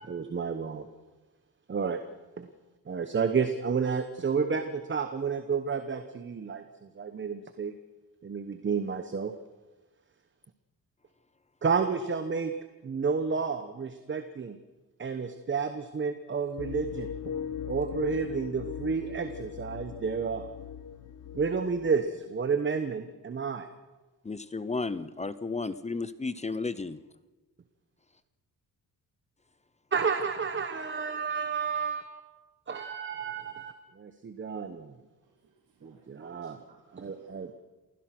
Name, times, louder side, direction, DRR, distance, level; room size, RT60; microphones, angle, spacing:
voice 1, 0.1-0.8 1.7-2.0 2.4-2.5 2.9-7.7 8.2-9.3 11.6-12.5 12.8-14.6 15.0-17.4 17.7-20.5 21.3-23.7 29.9-32.2 32.7-34.9 35.8-36.6 36.9-37.5, right 5 dB, 30° right, 8 dB, 1.1 m, -31 dB
sound 1, 16.6-21.9, left 8 dB, 50° left, 1.1 m, -39 dB
voice 2, 24.2-27.0, left 3 dB, 20° left, 15 dB, 0.6 m, -33 dB
voice 3, 35.2-37.5, right 5 dB, 75° right, -3 dB, 3.9 m, -61 dB
28.5 x 16.0 x 6.1 m, 1.2 s
wide cardioid pair, 150°, 38 cm